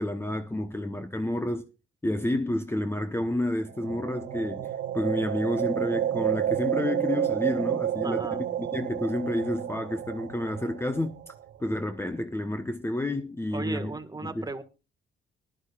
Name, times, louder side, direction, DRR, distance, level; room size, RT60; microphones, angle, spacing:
voice 1, 0.0-1.7 2.0-11.2 11.6-14.5, left 1 dB, 10° left, 0.9 m, -30 dB
sound 1, 3.7-11.7, right 11 dB, 70° right, 1.0 m, -30 dB
voice 2, 8.0-8.4 13.5-14.6, right 3 dB, 20° right, 1.5 m, -35 dB
20.5 x 11.5 x 2.4 m
cardioid pair, 90°, 20 cm